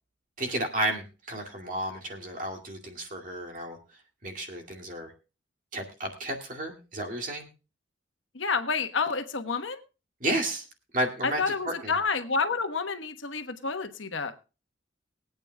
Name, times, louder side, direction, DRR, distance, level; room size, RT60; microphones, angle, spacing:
voice 1, 0.4-3.8 4.2-5.1 5.7-7.5 10.2-10.6 10.9-12.0, right 1 dB, 40° right, 3 dB, 2.3 m, -32 dB
voice 2, 8.3-9.8 11.2-14.3, left 4 dB, 80° left, 8 dB, 1.2 m, -29 dB
23.0 x 8.8 x 2.2 m, 0.31 s
head